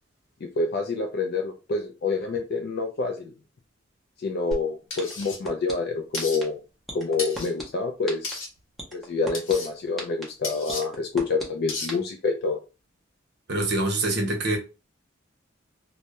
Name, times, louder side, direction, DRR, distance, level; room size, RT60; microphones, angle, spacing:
voice 1, 0.4-3.3 4.2-6.6 6.9-8.3 8.9-12.6, left 4 dB, 55° left, 0.3 m, -27 dB
sound 1, 4.5-4.6 5.0-5.7 6.2-6.4 6.9-7.6 8.1-8.3 8.8-9.5 10.0-10.2 10.7-11.4 11.9-12.0, right 1 dB, ahead, 0.6 m, -34 dB
sound 2, 4.9-5.4 6.1-6.4 7.2-7.5 8.2-8.5 9.3-9.7 10.4-10.8 11.7-11.9, left 3 dB, 90° left, 0.8 m, -34 dB
voice 2, 13.5-14.6, right 2 dB, 55° right, 0.7 m, -25 dB
2.2 x 2.0 x 2.8 m
head